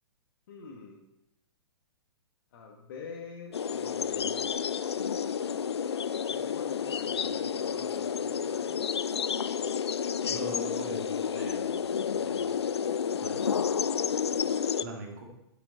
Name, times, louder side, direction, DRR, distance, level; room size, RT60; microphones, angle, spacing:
voice 1, 0.5-1.0 2.5-4.8 6.3-8.8, left 5 dB, 50° left, 1 dB, 1.6 m, -46 dB
sound 1, 3.5-14.8, left 7 dB, 70° left, 0.4 m, -30 dB
voice 2, 10.2-12.5 13.2-13.6 14.8-15.3, right 2 dB, 45° right, 1 dB, 2.2 m, -42 dB
9.0 x 8.5 x 4.1 m, 0.85 s
figure-of-eight pair, 115°, 14 cm